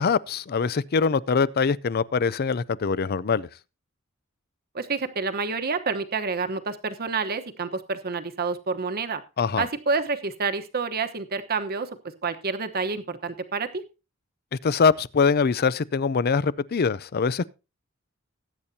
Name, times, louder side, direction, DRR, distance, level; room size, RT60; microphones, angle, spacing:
voice 1, 0.0-3.5 9.4-9.7 14.5-17.5, left 5 dB, 45° left, 0.5 m, -23 dB
voice 2, 4.7-9.2 9.6-11.9 12.2-13.8, right 4 dB, 45° right, 1.1 m, -28 dB
20.0 x 8.8 x 2.8 m
head